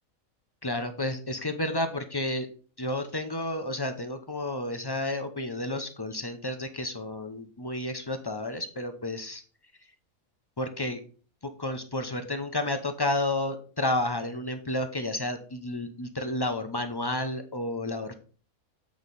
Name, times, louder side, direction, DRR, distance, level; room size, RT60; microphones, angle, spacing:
voice 1, 0.6-2.5 2.8-9.4 10.6-11.0 11.6-18.1, left 1 dB, 30° left, 7 dB, 0.5 m, -31 dB
8.1 x 4.7 x 4.0 m, 0.40 s
omnidirectional pair, 1.5 m